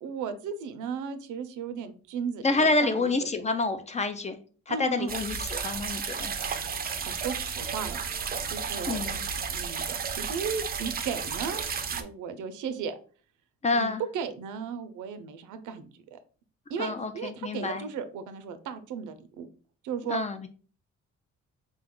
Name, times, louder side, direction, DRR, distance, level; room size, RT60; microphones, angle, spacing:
voice 1, 0.0-3.3 4.7-5.1 6.8-8.1 8.5-9.0 9.5-11.7 12.0-13.0 13.7-16.2 16.7-19.5 19.8-20.2, right 6 dB, 85° right, 10 dB, 0.6 m, -35 dB
voice 2, 2.4-4.4 4.7-6.3 8.9-9.2 13.6-14.0 16.8-17.8 20.1-20.5, left 3 dB, 25° left, 9 dB, 0.4 m, -28 dB
sound 1, 5.1-12.0, right 6 dB, 30° right, 0.5 m, -33 dB
4.0 x 2.3 x 3.6 m, 0.40 s
cardioid pair, 90°, 30 cm